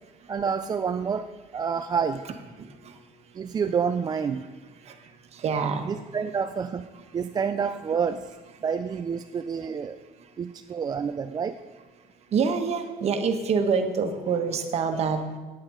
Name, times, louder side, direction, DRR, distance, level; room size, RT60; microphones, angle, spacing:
voice 1, 0.3-2.3 3.3-4.4 5.8-8.3 8.6-10.0 10.4-11.6, right 6 dB, 30° right, 8 dB, 0.4 m, -28 dB
voice 2, 5.4-5.9 12.3-15.2, right 5 dB, 50° right, 7 dB, 1.2 m, -25 dB
9.6 x 8.7 x 4.8 m, 1.3 s
cardioid pair, 115°, 14 cm